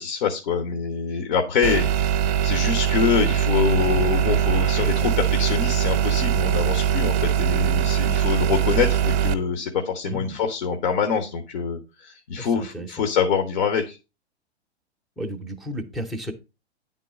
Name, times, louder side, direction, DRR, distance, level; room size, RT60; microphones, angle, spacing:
voice 1, 0.0-14.0, left 6 dB, 45° left, 5 dB, 1.0 m, -25 dB
sound 1, 1.6-9.3, right 9 dB, 35° right, 0.9 m, -22 dB
voice 2, 10.0-10.4 12.4-13.0 15.2-16.3, equal, ahead, 1 dB, 0.7 m, -33 dB
9.9 x 3.8 x 5.1 m, 0.29 s
figure-of-eight pair, 110°, 33 cm